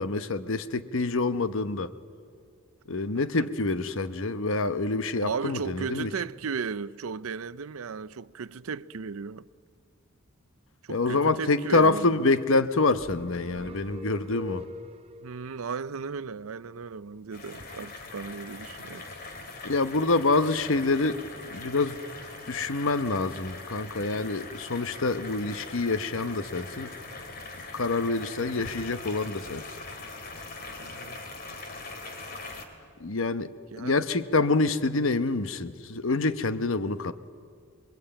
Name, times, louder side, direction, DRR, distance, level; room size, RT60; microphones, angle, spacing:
voice 1, 0.0-1.9 2.9-6.1 10.9-14.6 19.6-22.0 22.5-26.9 27.7-29.6 33.0-33.5 33.8-37.1, left 3 dB, 65° left, 1.0 m, -26 dB
voice 2, 3.1-3.5 5.2-9.4 10.8-12.3 15.2-19.1 30.8-31.2 33.7-34.0, right 5 dB, 80° right, 0.6 m, -36 dB
sound 1, 12.9-15.4, left 2 dB, 25° right, 0.7 m, -43 dB
sound 2, 17.3-32.6, left 3 dB, 45° left, 2.9 m, -41 dB
26.5 x 22.5 x 8.8 m
head